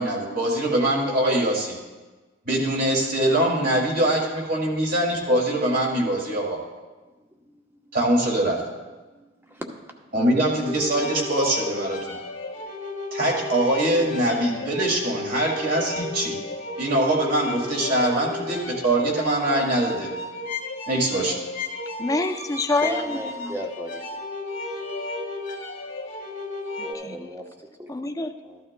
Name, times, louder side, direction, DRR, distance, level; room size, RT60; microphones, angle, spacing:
voice 1, 0.0-1.8 2.5-6.6 7.9-8.6 10.1-12.2 13.1-16.4 16.8-20.1 20.9-21.4, right 1 dB, 50° right, 2.3 m, -23 dB
voice 2, 9.1-10.0 10.3-10.4 22.8-24.2 26.8-27.5 27.8-27.9 28.5-28.6, right 1 dB, 10° right, 0.9 m, -36 dB
sound 1, 10.6-26.9, left 2 dB, 85° left, 1.7 m, -33 dB
voice 3, 22.0-23.6 26.8-27.2 27.9-28.3, left 2 dB, 20° left, 0.5 m, -27 dB
14.0 x 12.0 x 2.2 m
head